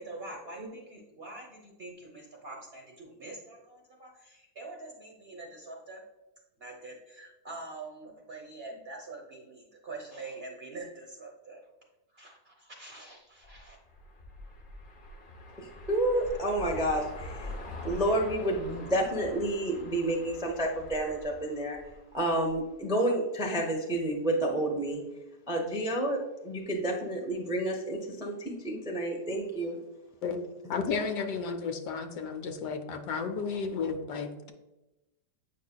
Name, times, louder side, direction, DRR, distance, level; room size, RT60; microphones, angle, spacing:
voice 1, 0.0-6.0 6.6-11.6 12.1-13.8, right 2 dB, 50° right, 0 dB, 0.7 m, -45 dB
sound 1, 13.4-22.7, left 1 dB, 55° left, 0.5 m, -44 dB
voice 2, 15.6-17.5 17.8-21.8 22.1-25.0 25.5-29.8, right 1 dB, 5° right, 0 dB, 0.3 m, -30 dB
voice 3, 30.7-34.5, left 5 dB, 75° left, 7 dB, 1.2 m, -33 dB
8.2 x 5.4 x 2.2 m, 1.0 s
omnidirectional pair, 1.9 m